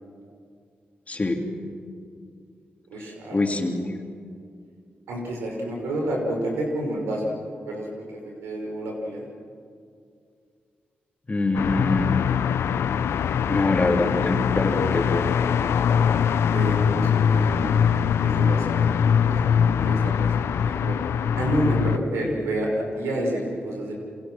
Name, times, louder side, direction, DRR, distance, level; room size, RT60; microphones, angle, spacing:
voice 1, 1.1-1.4 3.3-3.9 11.3-12.1 13.5-15.3, left 2 dB, 35° left, 2 dB, 3.7 m, -24 dB
voice 2, 2.9-3.7 5.1-7.3 7.7-7.9 8.4-9.3 16.5-17.9 18.2-18.8 19.2-20.3 20.7-21.0 21.3-23.9, right 1 dB, 90° right, 0 dB, 5.7 m, -29 dB
sound 1, 11.5-22.0, left 7 dB, 80° left, 0.8 m, -22 dB
28.5 x 26.5 x 6.3 m, 2.3 s
supercardioid pair, 50°, 4 cm